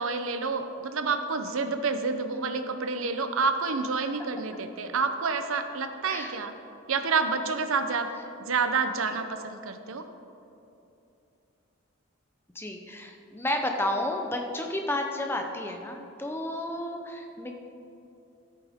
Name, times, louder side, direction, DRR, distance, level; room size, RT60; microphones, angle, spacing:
voice 1, 0.0-6.5 6.9-8.1 8.4-10.1, right 4 dB, 70° right, 8 dB, 0.7 m, -28 dB
voice 2, 6.0-6.4 12.5-17.5, left 1 dB, 10° left, 3 dB, 0.6 m, -32 dB
13.5 x 8.5 x 3.6 m, 2.8 s
head